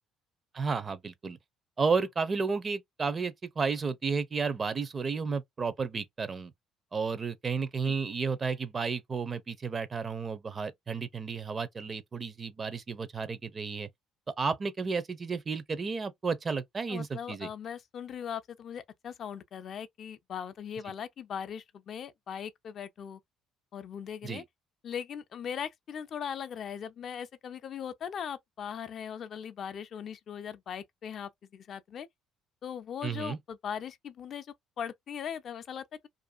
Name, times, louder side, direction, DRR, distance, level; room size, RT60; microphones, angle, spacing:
voice 1, 0.5-1.4 1.8-6.5 6.9-13.9 14.4-17.5 24.2-24.4 33.0-33.4, right 5 dB, 35° right, 0.5 m, -32 dB
voice 2, 16.9-23.2 23.7-24.4 24.8-32.1 32.6-34.5 34.8-36.1, left 8 dB, 55° left, 0.4 m, -39 dB
2.5 x 2.4 x 2.2 m
supercardioid pair, 70°, 0 cm